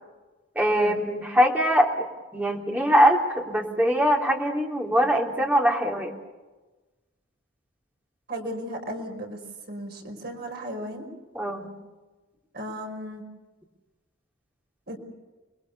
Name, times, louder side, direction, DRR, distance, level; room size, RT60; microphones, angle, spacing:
voice 1, 0.5-2.1 2.3-6.1 11.3-11.7, equal, 10° right, 0 dB, 3.2 m, -22 dB
voice 2, 8.3-9.4 9.7-11.1 12.5-13.2 14.9-15.0, equal, 50° right, 2 dB, 5.3 m, -35 dB
29.5 x 21.5 x 6.9 m, 1.2 s
head